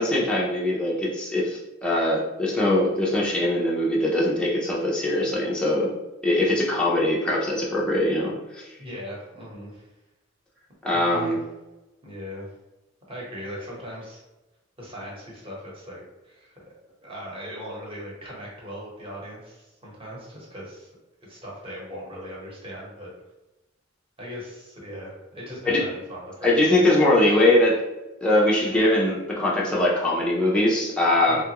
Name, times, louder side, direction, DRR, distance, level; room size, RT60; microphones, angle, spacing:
voice 1, 0.0-5.9 6.2-8.7 10.8-11.4 25.7-25.9 26.4-27.8 28.2-31.4, left 1 dB, 5° left, -6 dB, 0.5 m, -22 dB
voice 2, 8.8-9.9 10.9-11.3 12.0-12.4 13.1-14.2 14.8-16.7 17.0-20.9 21.3-23.1 24.2-26.7 31.3-31.4, equal, 30° right, -4 dB, 1.0 m, -39 dB
2.9 x 2.3 x 2.8 m, 1.0 s
head